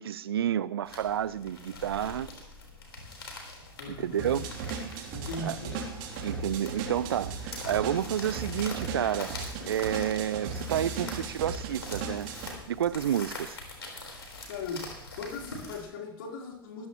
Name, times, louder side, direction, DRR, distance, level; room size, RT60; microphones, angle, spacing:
voice 1, 0.0-2.3 3.9-4.5 5.4-5.6 6.2-9.3 9.6-12.3 12.7-13.6, right 10 dB, 70° right, 0.5 m, -30 dB
sound 1, 0.8-15.8, left 2 dB, 80° left, 4.1 m, -44 dB
voice 2, 3.8-4.4 5.1-5.8 14.5-16.9, left 3 dB, 60° left, 3.8 m, -39 dB
sound 2, 4.2-12.5, right 5 dB, 55° right, 3.2 m, -37 dB
19.5 x 15.0 x 3.1 m
figure-of-eight pair, 90°, 13 cm